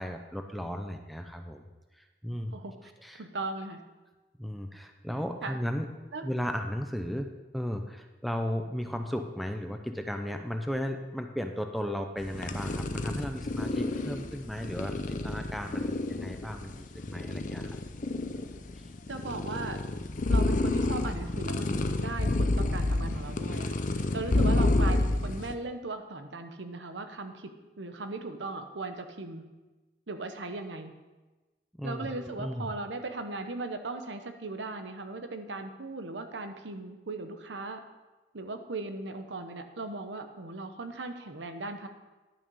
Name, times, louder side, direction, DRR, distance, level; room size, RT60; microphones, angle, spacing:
voice 1, 0.0-1.6 2.0-2.6 3.0-3.2 4.4-5.9 6.2-17.8 24.7-25.0 31.8-32.7, equal, ahead, 5 dB, 0.6 m, -35 dB
voice 2, 3.1-3.8 5.4-5.6 6.1-6.2 19.1-19.8 20.3-29.4 30.1-30.9 31.8-37.8 38.3-41.9, right 3 dB, 90° right, 7 dB, 0.9 m, -38 dB
sound 1, 12.2-25.6, left 2 dB, 45° left, 0.6 m, -29 dB
11.0 x 6.0 x 5.5 m, 1.2 s
head